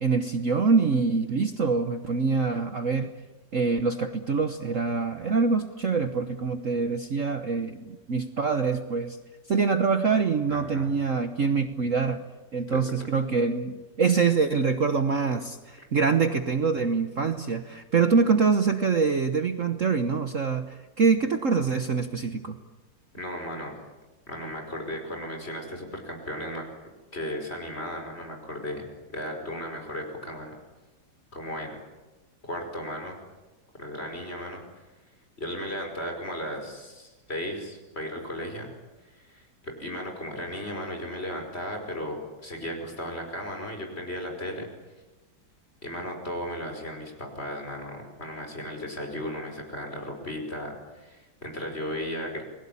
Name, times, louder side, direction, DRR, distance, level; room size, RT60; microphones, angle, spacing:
voice 1, 0.0-3.1 3.5-9.2 9.5-12.2 12.5-22.6, right 5 dB, 45° right, 8 dB, 1.4 m, -25 dB
voice 2, 10.5-10.9 12.7-12.8 23.1-23.8 24.3-26.6 27.1-28.9 29.1-30.5 31.3-31.8 32.5-33.2 33.8-34.8 35.4-38.7 39.1-44.7 45.8-52.4, equal, 30° left, 3 dB, 5.5 m, -35 dB
29.5 x 21.0 x 8.6 m, 1.1 s
omnidirectional pair, 2.1 m